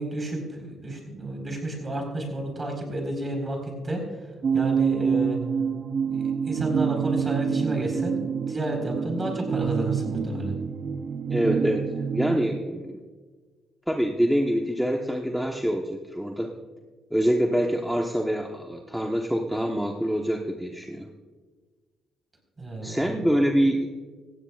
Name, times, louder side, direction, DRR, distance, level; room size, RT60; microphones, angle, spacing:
voice 1, 0.0-4.0 4.5-5.4 6.1-8.2 8.5-10.6 22.6-23.1, right 1 dB, 30° right, 2 dB, 4.4 m, -31 dB
sound 1, 4.4-12.6, right 6 dB, 50° right, 0.5 m, -27 dB
voice 2, 11.3-11.8 12.1-13.0 13.9-16.5 17.1-21.1 22.8-23.9, equal, ahead, 1 dB, 1.1 m, -25 dB
17.5 x 15.0 x 2.4 m, 1.4 s
cardioid pair, 90°, 0 cm